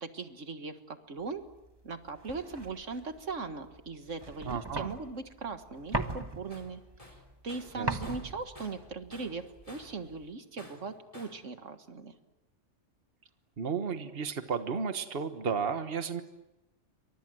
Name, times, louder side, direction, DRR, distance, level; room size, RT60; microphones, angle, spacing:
voice 1, 0.0-1.4 1.8-6.8 7.4-12.1, right 4 dB, 75° right, 8 dB, 1.9 m, -39 dB
sound 1, 1.4-10.3, right 2 dB, 20° right, 1.5 m, -41 dB
voice 2, 4.4-5.0 7.8-7.9 13.6-16.2, right 6 dB, 50° right, 9 dB, 1.6 m, -33 dB
Tools, 6.5-6.7 7.0-8.9 9.1-10.0 10.6-11.4, left 1 dB, 25° left, 4.4 m, -51 dB
29.0 x 24.5 x 7.8 m, 0.96 s
omnidirectional pair, 1.3 m